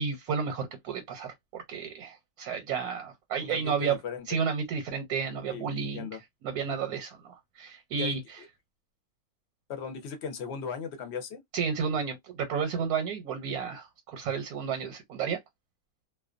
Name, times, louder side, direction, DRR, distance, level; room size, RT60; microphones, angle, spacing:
voice 1, 0.0-4.0 4.3-6.1 6.4-8.2 11.5-15.4, right 6 dB, 80° right, 1.1 m, -32 dB
voice 2, 3.4-4.2 5.5-5.6 5.9-6.2 7.9-8.5 9.7-11.4, left 6 dB, 60° left, 0.8 m, -37 dB
2.4 x 2.2 x 2.4 m
omnidirectional pair, 1.6 m